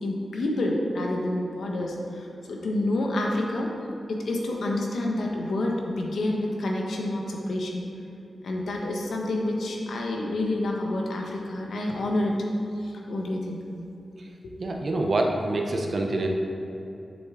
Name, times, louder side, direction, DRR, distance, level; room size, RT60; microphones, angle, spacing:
voice 1, 0.0-3.7 4.1-7.9 8.4-12.4 12.8-13.6 14.4-14.5, left 1 dB, 80° left, 0 dB, 1.1 m, -28 dB
voice 2, 14.6-16.3, right 2 dB, 45° right, 2 dB, 0.8 m, -26 dB
7.7 x 6.8 x 3.7 m, 2.8 s
wide cardioid pair, 140°, 0 cm